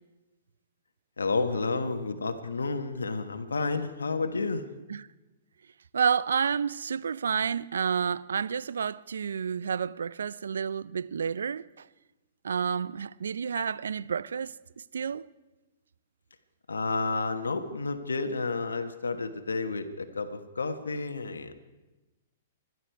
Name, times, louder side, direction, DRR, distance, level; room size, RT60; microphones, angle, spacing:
voice 1, 1.2-4.6 16.7-21.5, left 3 dB, 90° left, 1.2 m, -31 dB
voice 2, 5.9-11.9 12.4-14.5 14.9-15.3, right 7 dB, 80° right, 0.4 m, -30 dB
25.0 x 11.0 x 4.6 m
hypercardioid pair, 120°, 0 cm